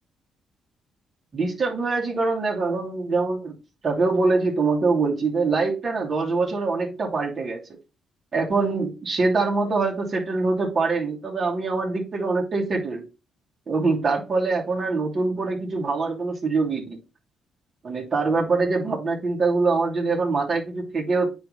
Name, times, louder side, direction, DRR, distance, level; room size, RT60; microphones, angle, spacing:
voice 1, 1.3-3.6 3.8-7.6 8.3-13.0 13.7-17.0 17.8-21.3, right 3 dB, 40° right, 2.8 m, -24 dB
9.3 x 3.4 x 5.5 m
cardioid pair, 90°, 0 cm